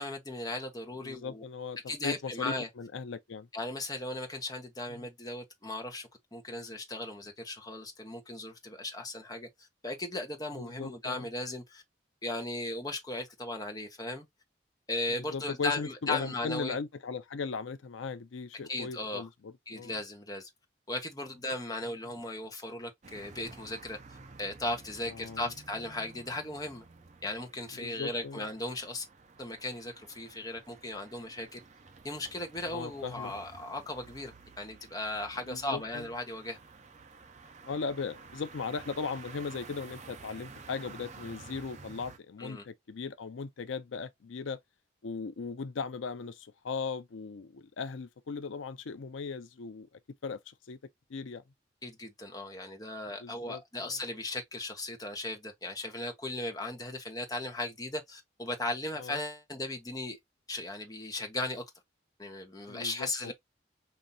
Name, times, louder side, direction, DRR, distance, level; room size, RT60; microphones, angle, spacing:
voice 1, 0.0-1.4 1.9-2.7 3.5-9.5 9.8-11.8 12.2-14.3 14.9-16.8 18.7-19.3 19.7-20.5 20.9-24.0 24.4-26.8 27.2-29.1 29.4-31.6 32.0-36.6 42.4-42.6 51.8-60.2 60.5-61.6 62.2-63.3, left 2 dB, 20° left, 0.9 m, -37 dB
voice 2, 1.0-3.5 4.9-5.1 10.6-11.3 15.2-19.9 25.1-25.5 27.8-28.5 32.7-33.3 35.5-36.1 37.6-44.6 45.0-49.9 50.2-50.8 51.1-51.4 53.2-54.0 59.0-59.2 62.7-63.3, left 5 dB, 90° left, 0.5 m, -38 dB
sound 1, 23.0-42.2, right 4 dB, 40° right, 0.6 m, -52 dB
5.3 x 2.7 x 2.7 m
head